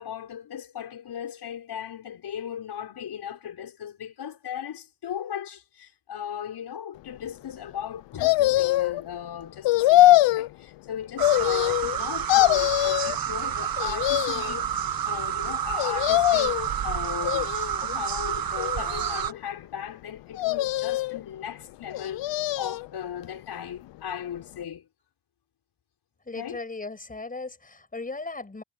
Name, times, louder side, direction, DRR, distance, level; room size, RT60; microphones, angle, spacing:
voice 1, 0.0-14.7 15.1-22.3 22.6-24.9 26.3-26.6, left 9 dB, 65° left, 5.9 m, -37 dB
sound 1, 8.2-9.0 9.6-10.5 11.2-12.0 12.3-13.2 13.8-14.6 15.8-16.7 17.2-17.9 18.6-19.4 20.4-21.2 21.9-22.9 23.2-23.3, left 15 dB, 80° left, 0.6 m, -22 dB
sound 2, 11.2-19.3, right 9 dB, 50° right, 1.5 m, -29 dB
voice 2, 26.2-28.6, left 3 dB, 20° left, 5.9 m, -37 dB
cardioid pair, 125°, 43 cm